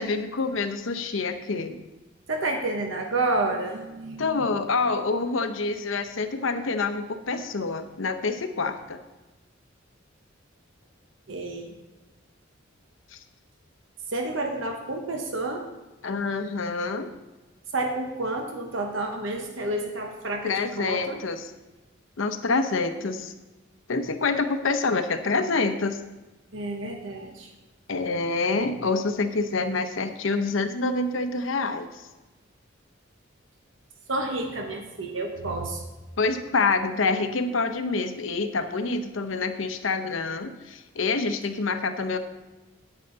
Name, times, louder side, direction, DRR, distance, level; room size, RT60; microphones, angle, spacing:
voice 1, 0.0-1.8 4.2-9.0 13.1-13.2 16.0-17.1 20.4-21.5 22.2-23.3 23.9-26.0 27.9-31.9 36.2-42.2, left 3 dB, 75° left, 8 dB, 0.7 m, -27 dB
voice 2, 2.3-4.5 11.3-11.7 14.1-15.6 17.7-21.2 26.5-27.5 34.1-35.8, right 2 dB, 75° right, 3 dB, 1.0 m, -30 dB
9.0 x 8.9 x 3.9 m, 1.1 s
head